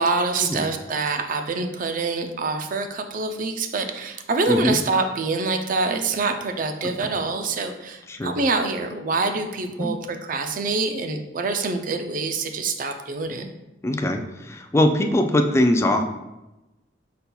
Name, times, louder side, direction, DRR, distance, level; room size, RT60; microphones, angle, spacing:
voice 1, 0.0-13.5, right 3 dB, 50° right, 6 dB, 0.4 m, -25 dB
voice 2, 4.5-4.8 8.1-8.4 9.8-9.9 13.8-16.0, left 1 dB, 15° left, 5 dB, 0.3 m, -21 dB
5.4 x 4.1 x 2.3 m, 1.0 s
head